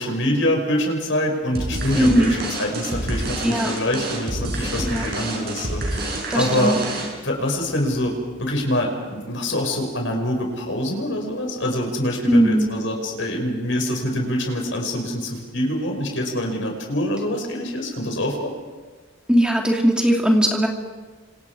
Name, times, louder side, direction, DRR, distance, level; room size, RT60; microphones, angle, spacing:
voice 1, 0.0-6.8 7.2-18.5, left 1 dB, 70° left, 2 dB, 5.7 m, -25 dB
sound 1, 1.6-7.3, right 1 dB, 50° right, 6.7 m, -28 dB
voice 2, 1.9-2.3 3.4-3.7 4.8-5.1 6.3-6.8 12.3-12.7 19.3-20.7, equal, 5° right, 1 dB, 2.7 m, -18 dB
30.0 x 26.5 x 4.9 m, 1.3 s
head